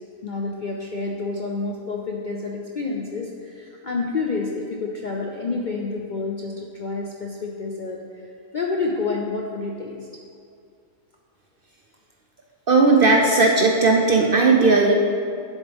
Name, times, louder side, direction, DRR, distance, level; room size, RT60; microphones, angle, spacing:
voice 1, 0.2-10.0, left 3 dB, 50° left, -1 dB, 0.5 m, -29 dB
voice 2, 12.7-14.9, right 3 dB, 50° right, 1 dB, 0.7 m, -16 dB
10.0 x 7.2 x 3.5 m, 2.4 s
omnidirectional pair, 1.5 m